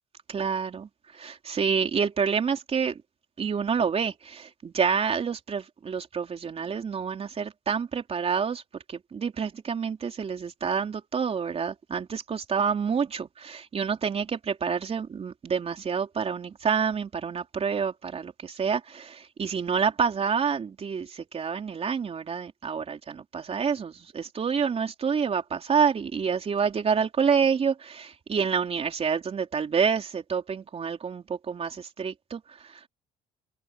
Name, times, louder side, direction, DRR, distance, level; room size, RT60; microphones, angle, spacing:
voice 1, 0.3-3.0 3.4-32.9, right 6 dB, 35° right, 3.7 m, -28 dB
cardioid pair, 110°, 17 cm